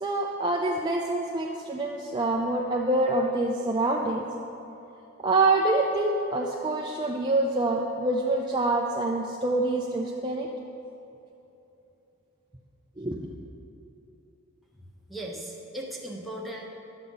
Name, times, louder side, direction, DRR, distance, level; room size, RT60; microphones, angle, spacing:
voice 1, 0.0-4.2 5.2-10.5 13.0-13.3, right 2 dB, 20° right, -1 dB, 0.5 m, -26 dB
voice 2, 15.1-16.7, right 1 dB, ahead, -1 dB, 1.1 m, -37 dB
11.5 x 7.9 x 5.6 m, 2.9 s
head